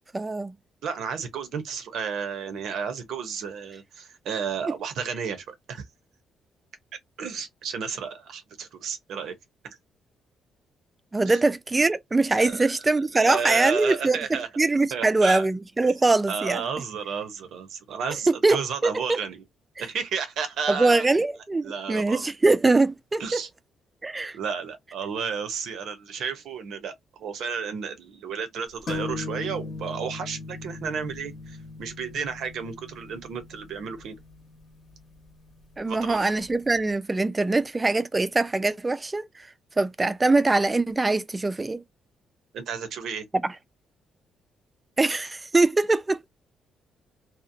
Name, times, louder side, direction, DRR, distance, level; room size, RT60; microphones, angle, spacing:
voice 1, 0.1-0.5 11.1-14.2 14.6-16.6 18.4-19.2 20.7-23.2 24.0-24.4 35.8-39.2 39.8-41.8 45.0-46.2, right 3 dB, 20° right, 0.3 m, -22 dB
voice 2, 0.8-5.8 7.2-9.4 9.6-9.8 11.3-11.4 12.4-12.7 13.1-14.5 14.9-15.5 16.3-19.4 19.8-21.1 21.6-22.3 23.2-23.5 24.3-26.9 27.2-34.2 35.9-36.3 42.5-43.2, right 6 dB, 75° right, 0.6 m, -32 dB
sound 1, 28.9-36.4, left 3 dB, 45° left, 0.8 m, -39 dB
2.7 x 2.0 x 2.5 m
cardioid pair, 90°, 0 cm